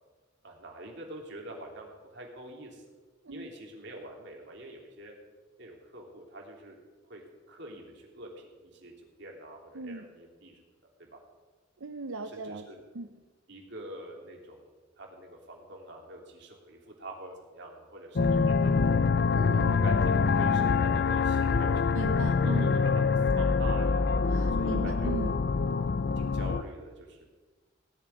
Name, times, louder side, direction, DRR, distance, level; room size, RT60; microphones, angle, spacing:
voice 1, 0.4-2.8 3.3-5.1 5.6-6.8 7.1-7.2 7.5-10.6 11.0-11.2 12.2-12.8 13.5-14.7 15.0-18.9 19.5-21.9 22.4-23.0 23.3-24.1 24.6-25.1 26.2-27.3, right 1 dB, 60° right, 0 dB, 3.2 m, -45 dB
voice 2, 9.7-10.1 11.8-12.7 12.9-13.1 19.3-19.8 21.9-22.7 24.3-25.3, right 2 dB, 80° right, 7 dB, 0.7 m, -37 dB
sound 1, 18.2-26.6, left 4 dB, 50° left, 0.5 m, -25 dB
18.0 x 7.1 x 9.7 m, 1.3 s
head